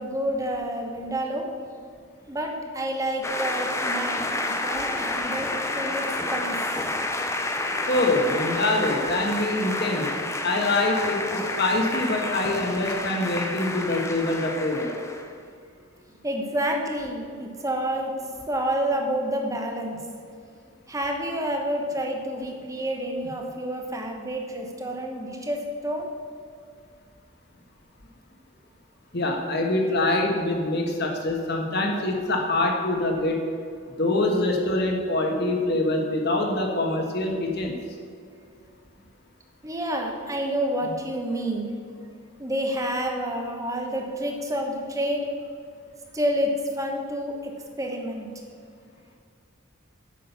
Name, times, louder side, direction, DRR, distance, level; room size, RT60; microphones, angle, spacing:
voice 1, 0.0-1.5 2.3-6.6 16.2-20.0 20.9-26.1 39.6-42.0 42.4-45.3 46.1-48.3, right 1 dB, 15° right, 2 dB, 1.0 m, -29 dB
sound 1, 3.2-15.3, left 2 dB, 15° left, 0.5 m, -29 dB
voice 2, 7.9-10.1 10.4-14.9 29.1-33.4 34.0-37.8, left 2 dB, 50° left, 1 dB, 1.4 m, -24 dB
8.6 x 6.2 x 7.1 m, 2.2 s
head